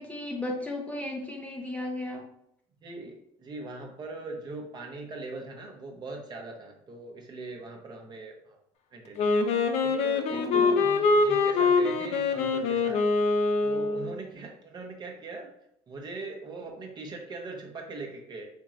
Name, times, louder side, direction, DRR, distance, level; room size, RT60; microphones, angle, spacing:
voice 1, 0.0-2.2 10.3-10.8, left 2 dB, 10° left, 0 dB, 0.6 m, -35 dB
voice 2, 2.8-8.6 8.9-9.4 9.8-13.0 13.6-15.5 15.9-18.5, right 3 dB, 35° right, 1 dB, 0.8 m, -40 dB
Wind instrument woodwind instrument, 9.2-14.2, left 4 dB, 55° left, 0.5 m, -24 dB
4.3 x 2.9 x 2.4 m, 0.73 s
supercardioid pair, 105°, 13 cm